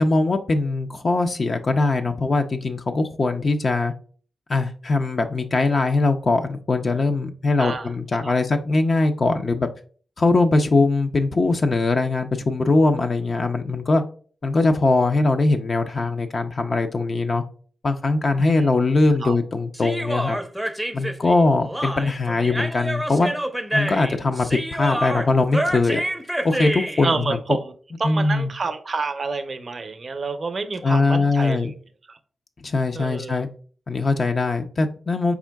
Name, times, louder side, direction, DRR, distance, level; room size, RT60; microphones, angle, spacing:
voice 1, 0.0-3.9 4.5-9.7 10.2-14.0 14.4-17.4 17.8-20.4 20.9-23.3 23.7-26.0 26.4-27.4 28.0-28.5 30.8-31.7 32.6-33.5 33.9-35.3, left 3 dB, 55° left, 6 dB, 0.4 m, -21 dB
voice 2, 7.6-7.9 8.2-8.3 18.4-18.7 19.2-19.4 27.0-27.7 28.0-31.7 32.1-32.2 32.9-33.4, right 4 dB, 55° right, 9 dB, 0.5 m, -28 dB
Human voice, 19.7-27.1, right 1 dB, 5° right, 0.5 m, -27 dB
4.4 x 3.5 x 2.2 m, 0.42 s
cardioid pair, 55°, 0 cm